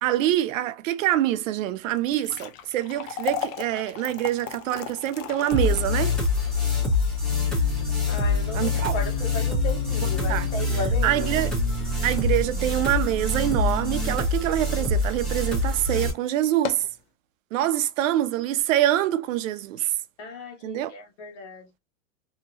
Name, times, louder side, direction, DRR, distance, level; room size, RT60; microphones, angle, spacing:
voice 1, 0.0-6.2 8.5-8.9 10.3-10.5 11.0-11.5 12.0-16.8 17.5-19.8 20.6-20.9, right 13 dB, 75° right, 0.6 m, -25 dB
sound 1, 1.9-14.2 14.6-14.7 15.4-15.6 15.9-16.0 16.4-17.0, left 8 dB, 90° left, 0.7 m, -38 dB
sound 2, 5.5-16.1, left 3 dB, ahead, 0.9 m, -25 dB
sound 3, 7.3-14.1, left 2 dB, 45° left, 1.1 m, -36 dB
voice 2, 8.1-11.3 19.8-19.9 20.2-21.8, left 3 dB, 60° left, 1.6 m, -35 dB
2.9 x 2.8 x 2.5 m
supercardioid pair, 175°, 39 cm